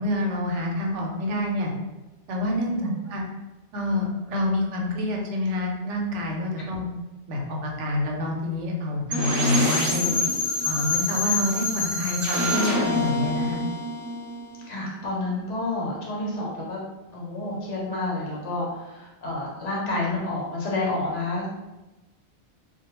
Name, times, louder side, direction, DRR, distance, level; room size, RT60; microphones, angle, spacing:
voice 1, 0.0-1.7 2.3-2.8 3.1-3.2 3.7-6.9 7.3-10.2 10.6-13.6, left 1 dB, 85° right, 0 dB, 0.9 m, -27 dB
sound 1, 9.1-14.9, left 1 dB, 25° right, 0.4 m, -26 dB
voice 2, 14.7-16.8 17.1-21.5, left 2 dB, 80° left, -3 dB, 1.1 m, -29 dB
2.2 x 2.1 x 3.0 m, 1.1 s
omnidirectional pair, 1.2 m